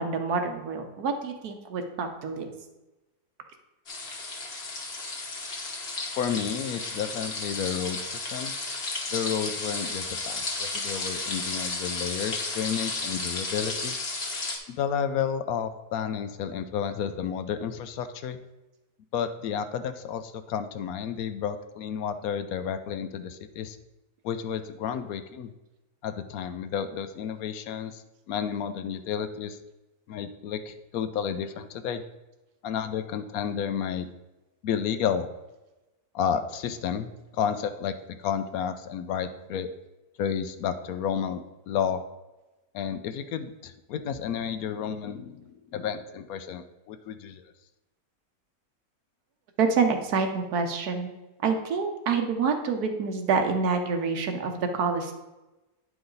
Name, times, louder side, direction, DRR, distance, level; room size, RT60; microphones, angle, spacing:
voice 1, 0.0-2.5 49.6-51.1 51.4-55.1, right 5 dB, 90° right, 5 dB, 1.4 m, -27 dB
sound 1, 3.9-14.6, left 3 dB, 45° left, 1.4 m, -33 dB
voice 2, 6.2-8.5 9.1-14.0 14.7-18.4 19.1-23.8 24.2-25.5 26.0-28.0 28.3-29.6 30.1-32.0 32.6-34.1 34.6-35.3 36.1-39.7 40.2-42.0 42.7-47.4, left 8 dB, 75° left, 10 dB, 1.0 m, -31 dB
9.7 x 4.8 x 4.0 m, 1.1 s
omnidirectional pair, 1.6 m